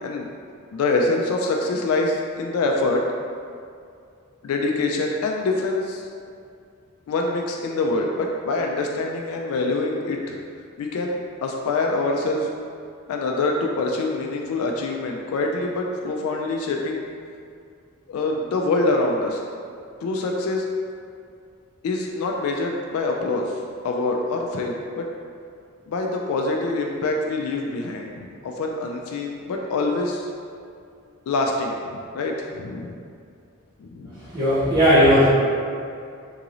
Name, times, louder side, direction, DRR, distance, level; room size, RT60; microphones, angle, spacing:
voice 1, 0.7-3.1 4.4-6.0 7.1-10.4 10.8-12.5 13.1-17.1 18.1-19.4 20.0-20.7 21.8-25.1 25.9-30.3 31.3-33.0 33.8-34.1, left 2 dB, 85° left, 0 dB, 0.3 m, -25 dB
voice 2, 34.1-35.3, equal, 25° right, -13 dB, 0.6 m, -17 dB
3.7 x 2.5 x 3.0 m, 2.4 s
head